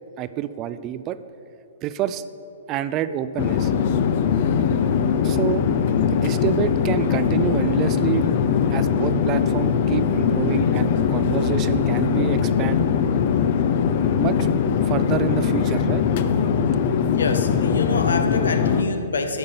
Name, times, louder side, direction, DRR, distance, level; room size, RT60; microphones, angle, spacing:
voice 1, 0.2-1.2 1.8-2.2 2.7-3.7 5.2-5.6 6.1-8.3 8.7-12.9 14.2-14.4 14.8-16.0, right 11 dB, 35° right, 14 dB, 0.4 m, -27 dB
Chatter / Fixed-wing aircraft airplane, 3.4-18.8, left 7 dB, 55° left, 0.6 m, -21 dB
voice 2, 17.1-19.4, left 4 dB, 85° left, 7 dB, 0.9 m, -26 dB
10.0 x 5.3 x 6.9 m, 2.8 s
hypercardioid pair, 125°, 0 cm